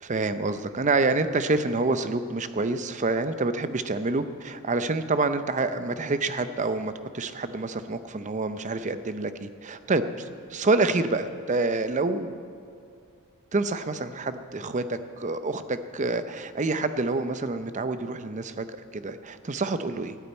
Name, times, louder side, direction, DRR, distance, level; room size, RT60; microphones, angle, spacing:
voice 1, 0.0-12.4 13.5-18.7 18.9-20.2, right 3 dB, 35° right, 11 dB, 0.6 m, -27 dB
14.0 x 8.6 x 8.9 m, 2.4 s
head